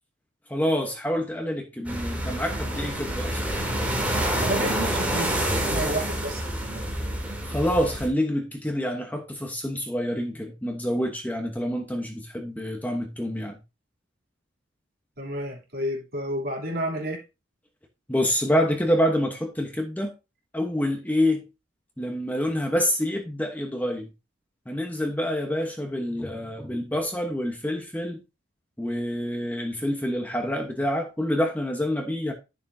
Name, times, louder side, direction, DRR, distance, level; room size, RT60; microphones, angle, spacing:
voice 1, 0.5-3.4 7.4-13.6 18.1-20.1 20.5-21.5 22.0-24.1 24.7-28.2 28.8-32.3, equal, 10° left, 1.1 m, -27 dB
sound 1, 1.8-8.1, right 1 dB, 5° right, 3.1 m, -27 dB
voice 2, 4.4-6.8 15.2-17.2, right 1 dB, 50° right, 3.2 m, -31 dB
11.5 x 7.0 x 2.8 m
head